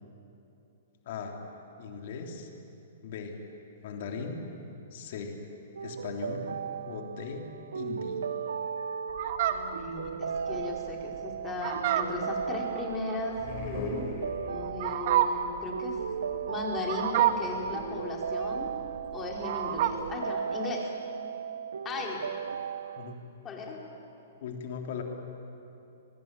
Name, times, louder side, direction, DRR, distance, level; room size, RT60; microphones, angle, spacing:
voice 1, 1.1-1.4 1.8-2.5 3.0-3.4 3.8-4.4 4.9-5.4 5.8-6.5 6.8-7.4 7.7-8.2 23.0-23.2 24.4-25.0, left 6 dB, 55° left, 2 dB, 3.4 m, -38 dB
sound 1, 5.8-23.1, right 7 dB, 80° right, 0.7 m, -36 dB
Fowl, 9.1-20.2, right 11 dB, 55° right, 1.6 m, -30 dB
voice 2, 9.5-13.4 14.4-16.0 16.5-18.8 19.1-20.9 21.8-22.2 23.4-23.8, left 3 dB, 20° left, -1 dB, 4.9 m, -37 dB
sound 2, 13.3-14.9, left 3 dB, 40° left, 5.1 m, -36 dB
23.5 x 21.0 x 9.1 m, 2.8 s
hypercardioid pair, 130°, 0 cm